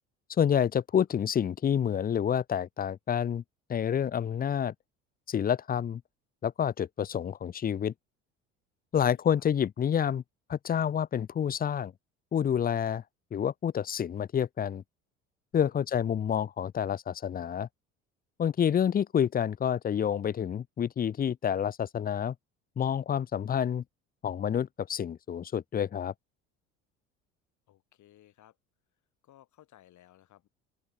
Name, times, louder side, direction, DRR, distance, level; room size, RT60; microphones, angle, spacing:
voice 1, 0.4-3.4 3.7-4.7 5.3-6.0 6.4-7.9 8.9-10.2 10.5-11.9 12.3-13.0 13.3-14.8 15.5-17.7 18.4-22.3 22.8-23.8 24.2-26.1, left 8 dB, 25° left, 0.7 m, -28 dB
voice 2, 9.1-9.4 15.7-15.9 27.7-28.6 29.2-30.5, left 13 dB, 50° left, 5.2 m, -59 dB
open air
figure-of-eight pair, 65°, 37 cm